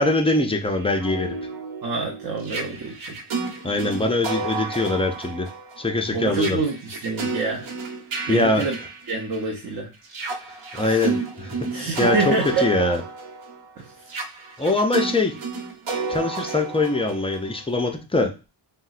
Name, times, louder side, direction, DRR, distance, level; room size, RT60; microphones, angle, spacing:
voice 1, 0.0-1.3 3.6-5.5 5.8-6.6 8.3-8.7 10.7-12.3 12.6-13.0 14.6-15.3 16.1-18.3, left 2 dB, 15° left, 4 dB, 0.4 m, -22 dB
sound 1, 0.7-9.6 10.0-17.9, right 4 dB, 75° right, 0.9 m, -32 dB
voice 2, 1.8-3.2 6.1-7.7 8.3-8.8 9.1-9.9 10.8-11.1 11.7-12.7 13.8-13.9 14.1-14.2, right 4 dB, 45° right, 1 dB, 0.7 m, -27 dB
3.7 x 2.1 x 2.4 m, 0.30 s
wide cardioid pair, 105°, 48 cm